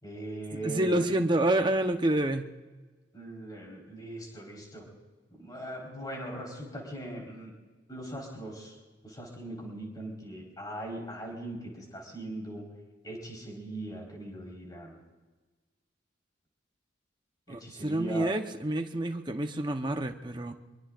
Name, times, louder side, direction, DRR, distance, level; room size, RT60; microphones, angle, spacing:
voice 1, 0.0-1.1 3.1-4.9 5.4-7.5 7.9-8.8 9.0-12.6 13.0-15.0 17.5-18.3, right 1 dB, 20° left, -1 dB, 4.3 m, -40 dB
voice 2, 0.5-2.5 17.5-20.5, right 1 dB, 25° right, 5 dB, 0.9 m, -28 dB
24.5 x 23.0 x 2.5 m, 1.3 s
head